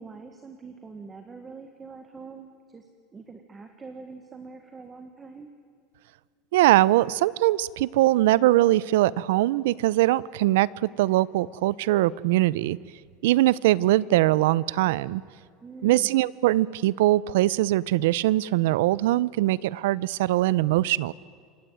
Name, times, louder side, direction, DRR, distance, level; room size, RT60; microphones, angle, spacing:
voice 1, 0.0-2.9 3.1-5.5 15.6-16.2, right 4 dB, 15° right, 6 dB, 1.6 m, -44 dB
voice 2, 6.5-12.8 13.2-15.2 15.8-21.1, right 16 dB, 85° right, 21 dB, 0.7 m, -22 dB
27.0 x 24.0 x 9.2 m, 2.2 s
cardioid pair, 180°, 0 cm